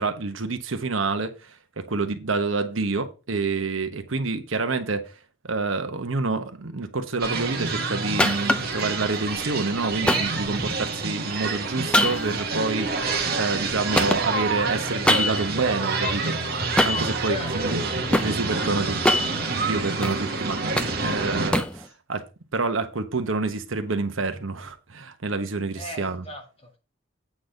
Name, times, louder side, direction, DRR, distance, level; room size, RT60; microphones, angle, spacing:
voice 1, 0.0-5.1 5.4-13.1 13.3-17.8 18.1-22.2 22.5-26.2, right 3 dB, 75° right, 1.1 m, -28 dB
sound 1, 7.2-21.5, right 3 dB, 50° right, 1.5 m, -28 dB
sound 2, 8.2-8.8 10.1-11.0 11.9-13.7 14.0-15.6 16.8-17.2 17.7-18.3 18.9-20.2 20.5-21.8, left 1 dB, 5° left, 0.5 m, -24 dB
voice 2, 17.2-17.7 25.8-26.8, left 3 dB, 30° left, 1.9 m, -36 dB
8.6 x 4.1 x 6.4 m
head